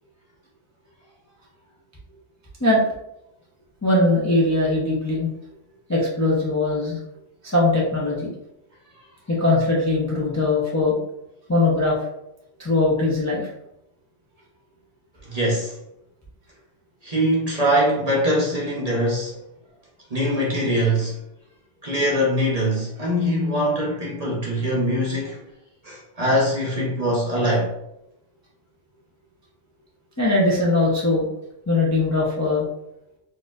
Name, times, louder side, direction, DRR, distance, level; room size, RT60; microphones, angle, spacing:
voice 1, 3.8-5.3 5.9-7.0 7.4-8.3 9.3-11.0 11.5-12.0 12.6-13.5 30.2-31.3 31.7-32.7, left 2 dB, 20° left, -5 dB, 0.5 m, -20 dB
voice 2, 15.2-15.7 17.0-19.4 20.1-21.2 21.8-25.4 25.8-27.7, equal, 40° right, -3 dB, 0.8 m, -22 dB
4.1 x 2.5 x 2.4 m, 0.83 s
omnidirectional pair, 1.2 m